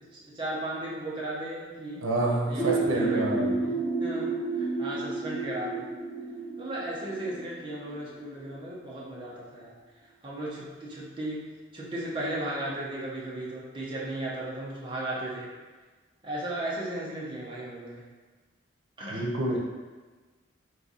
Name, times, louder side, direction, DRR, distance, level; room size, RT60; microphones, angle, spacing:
voice 1, 0.1-2.1 2.5-5.9 6.6-9.7 10.2-11.5 11.7-15.5 16.2-18.1 19.0-19.6, right 1 dB, 25° right, -6 dB, 0.9 m, -36 dB
voice 2, 2.0-3.5 19.1-19.6, right 2 dB, 90° right, 0 dB, 0.7 m, -28 dB
sound 1, 2.6-8.1, right 3 dB, 15° left, 0.8 m, -31 dB
3.6 x 3.2 x 4.0 m, 1.3 s
head